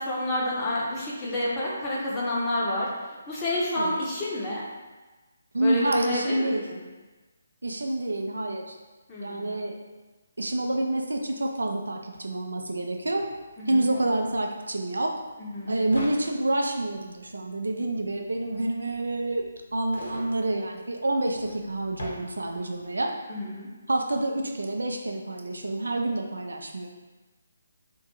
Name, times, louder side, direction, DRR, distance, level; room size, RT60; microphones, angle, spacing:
voice 1, 0.0-4.6 5.6-6.8 9.1-9.6 13.6-13.9 15.4-15.8 23.3-23.7, left 1 dB, 15° left, -7 dB, 0.6 m, -29 dB
voice 2, 5.5-6.6 7.6-8.8 9.2-9.8 10.4-13.3 13.7-15.1 15.7-19.4 19.7-23.1 23.9-26.9, right 1 dB, 70° right, 2 dB, 0.3 m, -28 dB
sound 1, 12.1-12.2 12.4-22.9, equal, 65° left, 0.9 m, -45 dB
2.5 x 2.2 x 2.9 m, 1.2 s
figure-of-eight pair, 145°, 0 cm